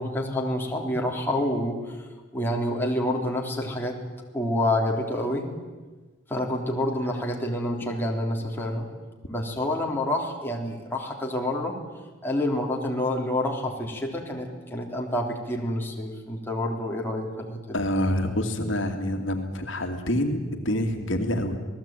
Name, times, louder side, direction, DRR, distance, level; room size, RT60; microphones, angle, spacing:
voice 1, 0.0-2.1 2.3-4.0 4.3-5.6 6.3-8.9 9.3-11.8 12.2-17.8, left 1 dB, 10° left, -1 dB, 3.5 m, -28 dB
voice 2, 17.7-21.6, left 1 dB, 65° left, 4 dB, 2.5 m, -26 dB
28.5 x 19.0 x 9.1 m, 1.3 s
head